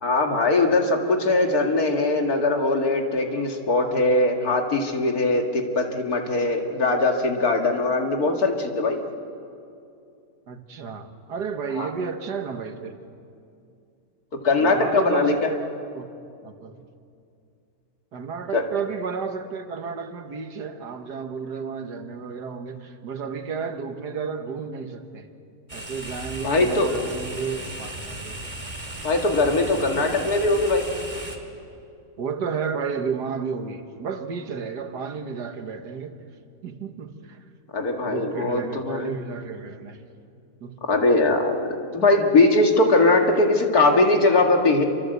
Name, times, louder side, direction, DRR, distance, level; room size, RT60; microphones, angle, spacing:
voice 1, 0.0-9.0 11.7-11.9 14.4-15.5 18.5-18.6 26.4-27.0 29.0-30.9 37.7-39.2 40.9-41.7 41.9-44.8, left 2 dB, 60° left, 2.6 m, -21 dB
voice 2, 10.5-13.0 14.6-15.6 15.9-16.1 16.4-16.8 18.1-25.3 25.7-28.4 29.6-30.0 32.2-36.2 36.6-37.4 38.0-40.0 40.6-40.8, right 6 dB, 70° right, 2.0 m, -32 dB
sound 1, 25.7-31.4, right 1 dB, 20° right, 2.4 m, -36 dB
27.5 x 24.0 x 8.0 m
omnidirectional pair, 1.8 m